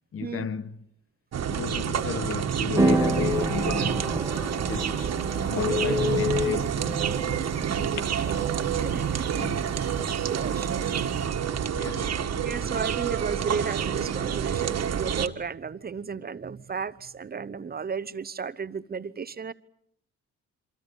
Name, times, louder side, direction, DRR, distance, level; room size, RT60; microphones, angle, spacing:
voice 1, 0.1-0.8 1.5-4.2 4.6-5.1 5.5-7.1 9.3-9.8 11.7-12.3, left 6 dB, 45° left, 1.2 m, -35 dB
sound 1, 1.3-15.3, right 8 dB, 60° right, 1.7 m, -28 dB
Telephone, 2.2-2.4 2.7-3.8 4.3-4.5 4.9-5.0 5.4-6.6 7.8-8.4, left 9 dB, 85° left, 1.6 m, -29 dB
sound 2, 2.8-11.2, right 2 dB, 10° right, 1.7 m, -32 dB
voice 2, 7.8-9.3 10.3-10.9 12.4-19.5, right 6 dB, 30° right, 0.9 m, -34 dB
27.5 x 24.5 x 7.1 m
cardioid pair, 90°, 30 cm